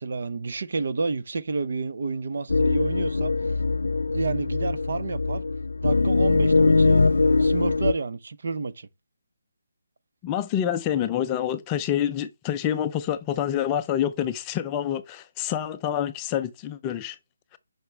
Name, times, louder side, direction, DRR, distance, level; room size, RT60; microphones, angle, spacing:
voice 1, 0.0-3.3 4.1-5.4 5.8-7.1 7.4-8.9, right 4 dB, 50° right, 0.8 m, -30 dB
sound 1, 2.5-7.9, left 3 dB, 85° left, 0.3 m, -22 dB
voice 2, 10.2-17.2, left 10 dB, 15° left, 0.4 m, -27 dB
9.4 x 5.8 x 3.4 m
hypercardioid pair, 170°, 0 cm